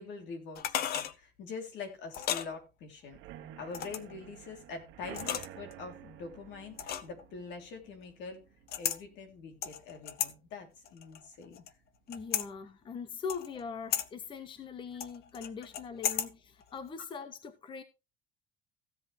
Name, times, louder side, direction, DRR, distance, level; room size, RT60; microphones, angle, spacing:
voice 1, 0.0-3.2 3.6-8.4 8.7-11.6 16.1-16.2, left 4 dB, 70° left, 3.3 m, -44 dB
sound 1, 0.5-1.1 2.1-2.5 3.7-4.1 5.1-5.7 6.8-7.2 8.7-9.0 9.6-10.3 10.8-11.7 12.1-12.5 13.3-13.6 13.9-14.1 15.0-16.3 16.6-16.7, left 10 dB, 55° left, 0.8 m, -34 dB
sound 2, 3.1-10.7 11.1-11.5 11.7-11.8 12.2-12.3, right 12 dB, 80° right, 1.3 m, -51 dB
voice 2, 12.1-17.8, left 5 dB, 25° left, 0.8 m, -41 dB
15.5 x 8.0 x 3.3 m
cardioid pair, 170°, 19 cm